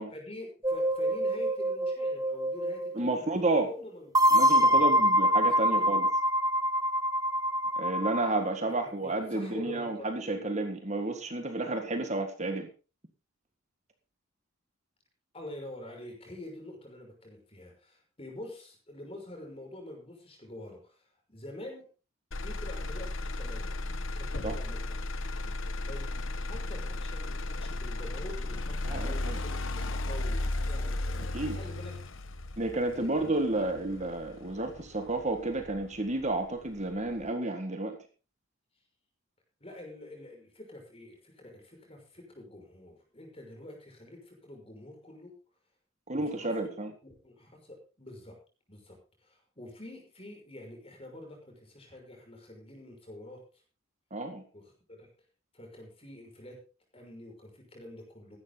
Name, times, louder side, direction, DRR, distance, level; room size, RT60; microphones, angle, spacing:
voice 1, 0.1-3.2 3.6-5.1 5.7-5.9 8.6-10.5 15.3-21.9 22.4-23.8 24.1-25.1 25.8-26.1 26.4-31.9 32.9-33.7 39.6-45.3 46.1-46.4 46.7-46.8 47.2-48.4 48.7-53.4 54.5-55.1 55.5-56.6 56.9-58.4, left 1 dB, 30° left, 2 dB, 5.9 m, -46 dB
sound 1, 0.6-2.9 4.1-8.4, equal, 15° right, 1.5 m, -25 dB
voice 2, 3.0-3.7 4.3-6.1 7.8-12.7 24.4-24.6 28.8-29.4 31.2-31.6 32.6-38.0 46.1-46.9 54.1-54.4, right 2 dB, 35° right, 6 dB, 1.8 m, -31 dB
Motor vehicle (road), 22.3-36.3 36.8-37.3, left 2 dB, 70° left, 1.1 m, -35 dB
15.5 x 12.0 x 4.0 m, 0.33 s
head